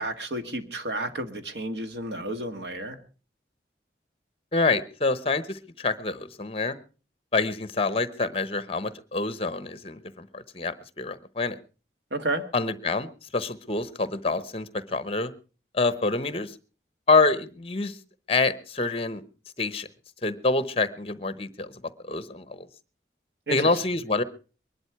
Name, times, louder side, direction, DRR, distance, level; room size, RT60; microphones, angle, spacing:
voice 1, 0.0-3.0 12.1-12.4 23.5-23.7, right 1 dB, 80° right, 9 dB, 1.7 m, -31 dB
voice 2, 4.5-6.8 7.3-11.6 12.5-15.3 15.7-16.5 17.1-18.0 18.3-19.2 19.6-19.9 20.2-21.7 22.0-22.7 23.5-24.2, left 3 dB, 35° left, 15 dB, 0.9 m, -26 dB
22.0 x 11.5 x 4.7 m, 0.37 s
head